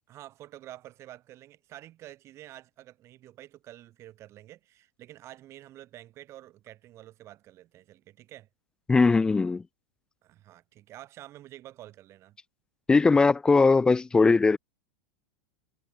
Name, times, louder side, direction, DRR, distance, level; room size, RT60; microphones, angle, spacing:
voice 1, 0.1-8.5 10.2-12.4, right 14 dB, 35° right, 6.0 m, -48 dB
voice 2, 8.9-9.6 12.9-14.6, left 4 dB, 10° left, 0.4 m, -20 dB
supercardioid pair, 130°, 8 cm